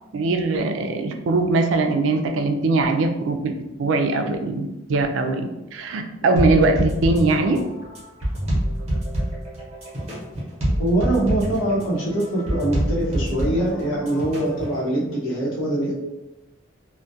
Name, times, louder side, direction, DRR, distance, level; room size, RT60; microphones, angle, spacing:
voice 1, 0.1-3.5 3.8-7.6, right 3 dB, 70° right, 6 dB, 0.3 m, -21 dB
sound 1, 6.4-14.8, equal, 30° right, 0.7 m, -26 dB
voice 2, 10.8-15.9, right 1 dB, 75° left, -4 dB, 0.8 m, -23 dB
2.3 x 2.1 x 2.6 m, 0.96 s
head